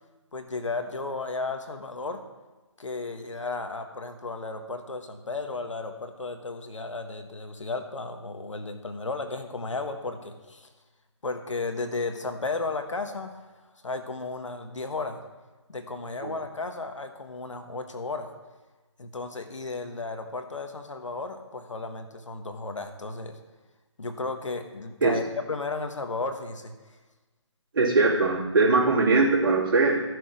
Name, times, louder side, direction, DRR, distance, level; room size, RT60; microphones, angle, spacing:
voice 1, 0.3-2.2 2.8-10.7 11.2-13.4 13.8-15.2 15.7-18.3 19.0-23.4 24.0-26.7, left 3 dB, 80° left, 6 dB, 1.4 m, -34 dB
voice 2, 27.7-30.0, right 3 dB, 45° right, -4 dB, 2.9 m, -21 dB
13.5 x 6.4 x 5.0 m, 1.2 s
figure-of-eight pair, 150°, 16 cm